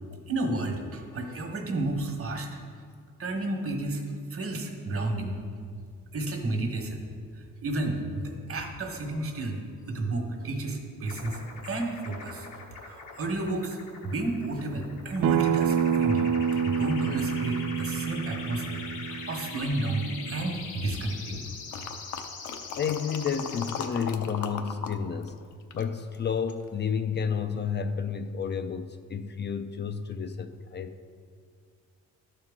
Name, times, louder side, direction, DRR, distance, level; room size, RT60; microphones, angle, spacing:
voice 1, 0.3-2.5 3.2-4.0 4.3-5.4 6.1-7.0 7.4-12.5 12.7-16.3 16.6-21.4, right 2 dB, 50° right, 3 dB, 1.3 m, -32 dB
sound 1, 11.1-23.9, left 4 dB, 85° left, 1.2 m, -42 dB
Acoustic guitar, 15.2-20.4, right 7 dB, 70° right, 0.5 m, -28 dB
sound 2, 21.7-25.0 25.2-26.7 27.2-27.3, left 6 dB, 70° left, 0.7 m, -38 dB
voice 2, 22.8-25.3 25.7-31.1, left 6 dB, 35° left, 8 dB, 0.4 m, -31 dB
12.0 x 4.7 x 3.7 m, 2.1 s
cardioid pair, 90°, 30 cm